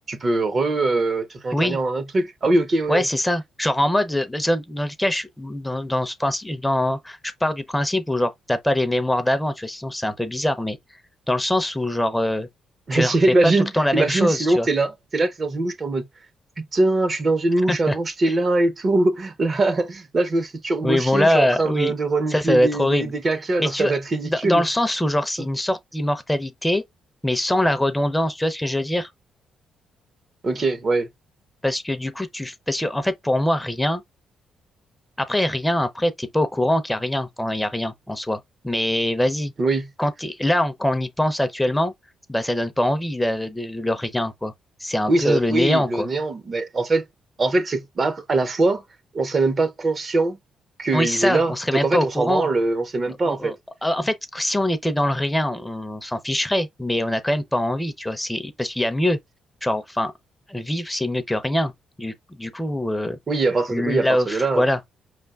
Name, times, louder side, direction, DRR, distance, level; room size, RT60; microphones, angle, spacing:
voice 1, 0.1-3.1 12.9-16.0 16.6-24.6 30.4-31.1 39.6-39.9 45.1-47.0 47.4-48.8 49.1-50.4 50.8-53.6 63.3-64.6, right 2 dB, 40° right, 0.7 m, -22 dB
voice 2, 2.9-10.8 11.3-12.5 12.9-13.2 13.4-14.7 17.7-18.0 20.8-21.9 22.3-23.1 23.6-23.9 24.3-26.8 27.2-29.1 31.6-34.0 35.2-39.5 40.0-41.9 42.3-44.5 44.8-46.1 50.9-52.5 53.1-53.5 53.8-59.2 59.6-60.1 60.5-61.7 62.0-63.2 63.7-64.8, left 1 dB, 5° left, 0.6 m, -23 dB
5.1 x 3.3 x 2.3 m
cardioid pair, 90°, 0 cm